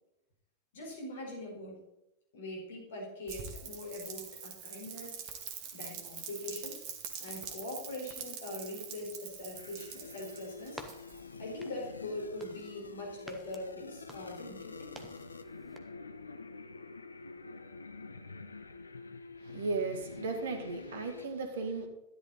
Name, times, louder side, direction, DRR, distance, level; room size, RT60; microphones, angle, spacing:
voice 1, 0.7-1.8 2.3-5.2 5.7-6.8 7.2-10.8 11.4-14.9, left 1 dB, 60° left, 0 dB, 4.3 m, -42 dB
Rain, 3.3-11.4, right 7 dB, 45° right, 1.9 m, -44 dB
sound 1, 9.5-21.3, left 4 dB, 80° left, 0.7 m, -47 dB
sound 2, 10.5-15.8, right 1 dB, 5° right, 1.4 m, -54 dB
voice 2, 19.4-21.9, right 4 dB, 60° right, 6 dB, 2.0 m, -35 dB
13.0 x 11.0 x 4.1 m, 0.86 s
figure-of-eight pair, 90°, 0 cm